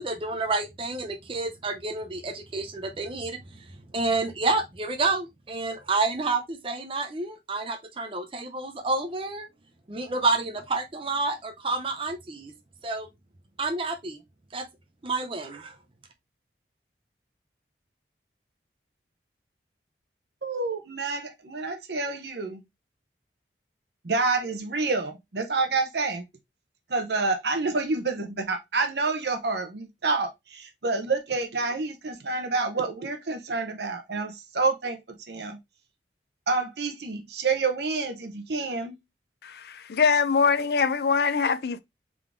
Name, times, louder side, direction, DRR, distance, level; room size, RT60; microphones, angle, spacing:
voice 1, 0.0-3.6 3.9-9.5 9.9-12.5 12.8-13.1 13.6-14.2 14.5-14.6 15.0-15.7, right 3 dB, 30° right, 0.6 m, -29 dB
voice 2, 20.4-22.6 24.0-26.3 26.9-35.0 35.3-35.6 36.5-39.0, right 3 dB, 65° right, 0.8 m, -28 dB
voice 3, 39.4-41.8, left 5 dB, 60° left, 0.4 m, -23 dB
3.8 x 3.6 x 3.5 m
head